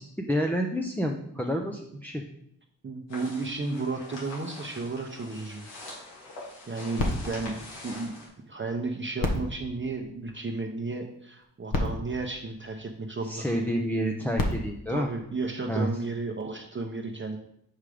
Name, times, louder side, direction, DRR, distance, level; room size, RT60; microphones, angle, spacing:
voice 1, 0.0-2.2 13.2-15.1 15.7-15.9, equal, 5° left, 1 dB, 0.7 m, -29 dB
voice 2, 2.8-5.7 6.7-8.1 8.5-13.7 14.9-17.4, right 3 dB, 30° right, 1 dB, 0.9 m, -33 dB
sound 1, 3.1-8.3, left 2 dB, 90° left, 2.6 m, -44 dB
sound 2, 7.0-8.6 9.1-10.8 11.4-11.5 11.7-13.3 14.1-15.9 16.6-16.7, left 1 dB, 55° left, 1.5 m, -34 dB
5.5 x 5.1 x 5.0 m, 0.76 s
supercardioid pair, 55°, 41 cm